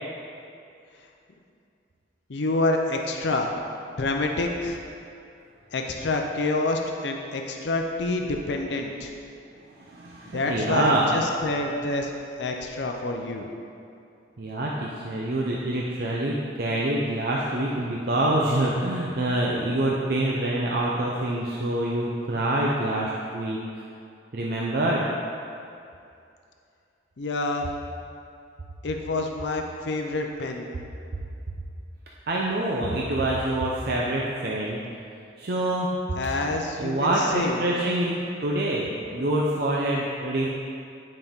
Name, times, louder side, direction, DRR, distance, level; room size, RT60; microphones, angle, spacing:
voice 1, 2.3-3.5 3.9-4.8 5.7-9.1 10.2-12.1 12.4-13.5 27.2-27.7 28.8-30.7 36.2-37.7, left 2 dB, 75° left, 2 dB, 0.6 m, -27 dB
voice 2, 9.8-11.1 14.4-23.6 24.3-25.1 32.3-34.8 35.4-36.0 36.8-38.1 38.4-40.5, right 1 dB, 55° right, -4 dB, 0.6 m, -26 dB
9.3 x 5.3 x 3.6 m, 2.5 s
head